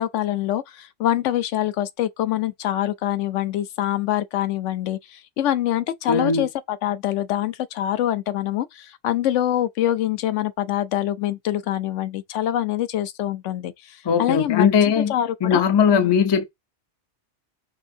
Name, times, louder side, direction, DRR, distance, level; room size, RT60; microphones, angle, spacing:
voice 1, 0.0-14.7 15.0-16.1, left 12 dB, 80° left, 0.9 m, -25 dB
voice 2, 6.1-6.5 14.0-15.1 15.4-16.4, left 7 dB, 40° left, 0.4 m, -19 dB
5.4 x 2.6 x 2.6 m
omnidirectional pair, 1.2 m